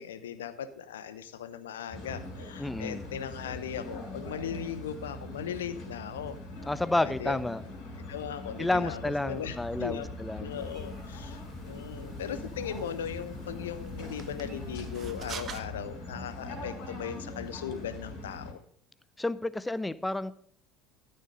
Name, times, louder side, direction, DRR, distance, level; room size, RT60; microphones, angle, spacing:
voice 1, 0.0-6.4 7.0-7.4 8.1-10.0 10.4-18.6, left 8 dB, 70° left, 14 dB, 0.8 m, -38 dB
sound 1, 1.9-18.5, left 2 dB, 55° left, 5.1 m, -42 dB
voice 2, 2.6-3.0 6.7-7.6 8.6-10.5 19.2-20.3, left 2 dB, 10° left, 17 dB, 0.6 m, -30 dB
sound 2, 10.6-15.6, right 4 dB, 35° right, 1.0 m, -47 dB
13.5 x 6.7 x 5.3 m, 0.62 s
figure-of-eight pair, 65°, 0 cm